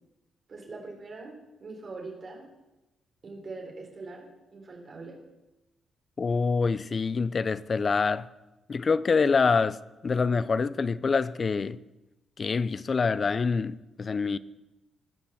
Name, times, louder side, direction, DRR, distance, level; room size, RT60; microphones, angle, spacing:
voice 1, 0.5-2.5 3.2-5.2, right 3 dB, 40° right, 3.7 m, -42 dB
voice 2, 6.2-8.3 8.7-11.8 12.4-14.4, left 4 dB, 35° left, 0.5 m, -26 dB
20.0 x 6.7 x 7.1 m
cardioid pair, 125°, 0 cm